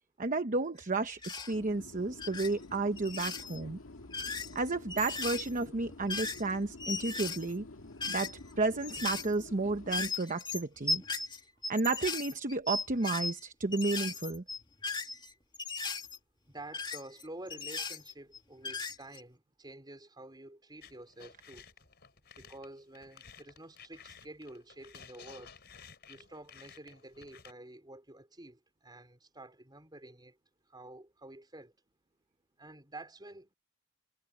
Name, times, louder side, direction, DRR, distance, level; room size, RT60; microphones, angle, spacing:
voice 1, 0.2-3.8 4.5-7.7 8.1-11.0 11.7-14.4, right 3 dB, 40° right, 0.9 m, -32 dB
sound 1, 1.2-1.5 2.1-2.5 3.0-3.6 4.0-6.5 6.8-8.5 8.8-9.4 9.9-13.4 13.7-16.2 16.7-18.4 18.6-19.2, left 3 dB, 20° left, 2.6 m, -37 dB
sound 2, 1.5-10.1, left 2 dB, 90° left, 1.8 m, -50 dB
voice 2, 16.5-21.6 22.3-25.5 26.1-30.4 30.7-31.7 32.6-33.5, right 1 dB, 20° right, 4.6 m, -49 dB
sound 3, 20.8-27.5, left 6 dB, 50° left, 4.2 m, -54 dB
head